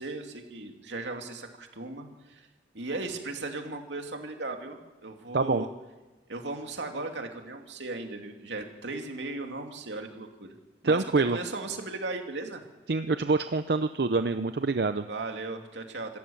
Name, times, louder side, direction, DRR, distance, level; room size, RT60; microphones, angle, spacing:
voice 1, 0.0-2.5 2.7-5.7 6.3-10.5 10.8-12.6 15.0-16.2, right 2 dB, 85° right, 3 dB, 2.6 m, -37 dB
voice 2, 10.8-11.4 12.9-15.1, right 3 dB, 60° right, 10 dB, 0.6 m, -26 dB
26.5 x 14.0 x 7.2 m, 1.2 s
head